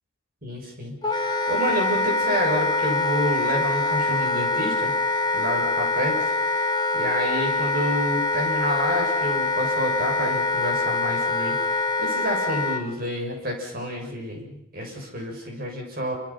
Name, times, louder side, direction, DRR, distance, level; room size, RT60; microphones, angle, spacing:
voice 1, 0.4-4.9 5.3-6.3 6.6-16.2, equal, 45° right, 1 dB, 7.3 m, -29 dB
Wind instrument woodwind instrument, 1.0-12.8, left 2 dB, 20° left, 1.6 m, -24 dB
28.0 x 27.0 x 5.8 m, 0.76 s
head